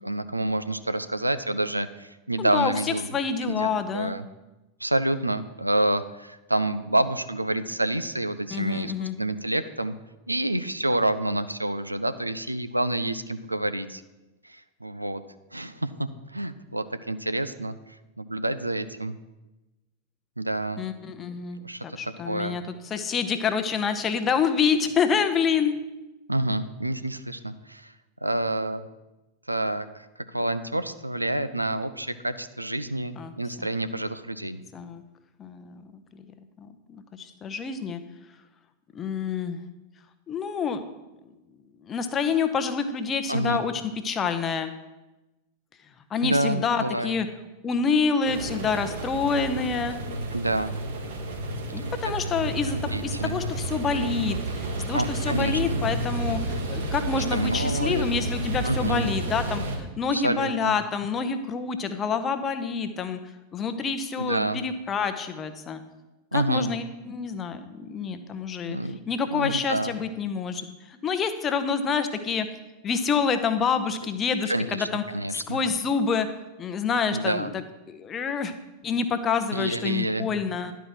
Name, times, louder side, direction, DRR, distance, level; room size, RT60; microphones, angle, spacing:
voice 1, 0.0-3.0 3.4-4.2 4.8-8.9 9.2-10.0 10.3-14.0 14.4-15.2 15.5-17.8 18.2-19.1 20.4-20.8 21.6-22.6 26.3-27.9 28.2-28.9 29.5-30.1 30.3-34.6 43.3-43.6 46.2-47.1 50.3-50.7 52.7-53.4 54.9-55.8 57.3-58.1 58.6-59.1 60.1-60.7 64.2-64.6 66.3-66.7 68.7-69.0 69.3-69.9 74.5-75.6 77.1-77.5 79.5-80.3, right 1 dB, 85° right, 12 dB, 0.4 m, -28 dB
voice 2, 2.4-4.1 8.5-9.1 20.8-25.8 33.2-33.7 34.7-35.0 35.4-36.0 36.6-38.0 38.9-39.6 40.3-40.8 41.8-44.7 46.1-47.3 47.6-50.0 51.7-63.2 63.5-65.8 66.3-68.8 69.1-72.5 72.8-75.0 75.3-76.3 76.6-78.5 78.8-80.7, left 5 dB, 25° left, 9 dB, 0.8 m, -27 dB
sound 1, 48.2-59.8, right 2 dB, 60° right, 1.4 m, -31 dB
11.0 x 4.7 x 5.7 m, 1.0 s
figure-of-eight pair, 90°, 0 cm